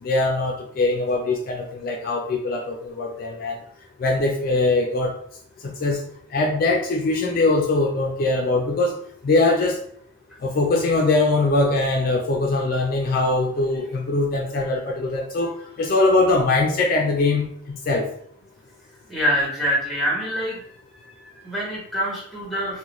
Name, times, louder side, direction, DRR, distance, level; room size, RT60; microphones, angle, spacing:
voice 1, 0.0-3.6 4.0-5.1 5.6-6.0 6.3-9.0 9.2-9.8 10.4-17.5 17.9-18.1, left 2 dB, 45° left, 1 dB, 0.3 m, -22 dB
voice 2, 19.1-20.7 21.0-22.8, equal, ahead, -4 dB, 1.0 m, -25 dB
3.8 x 2.1 x 2.9 m, 0.63 s
head